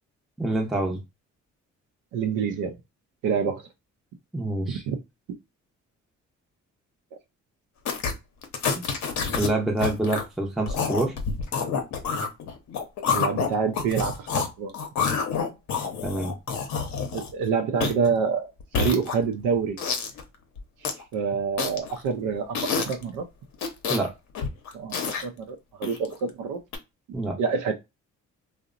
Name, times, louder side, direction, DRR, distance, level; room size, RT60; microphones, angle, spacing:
voice 1, 0.4-1.0 4.3-4.8 8.7-8.8 9.3-11.1 16.0-16.3 23.9-24.1 27.1-27.4, right 2 dB, ahead, 0.5 m, -26 dB
voice 2, 2.1-2.8 3.2-3.6 4.7-5.0 13.1-14.7 17.1-18.5 18.8-19.8 20.8-23.3 24.7-26.6 27.4-27.7, right 6 dB, 85° right, 0.5 m, -27 dB
sound 1, 7.9-8.1 8.4-9.5 9.8-10.2 10.7-14.5 14.7-17.4 17.8-18.1 18.6-19.4 19.8-20.2 20.6-21.0 21.6-22.0 22.5-23.0 23.5-24.1 24.4-25.2 25.8-26.1 26.7-26.8, left 5 dB, 65° left, 0.7 m, -28 dB
2.8 x 2.0 x 2.4 m
cardioid pair, 90°, 30 cm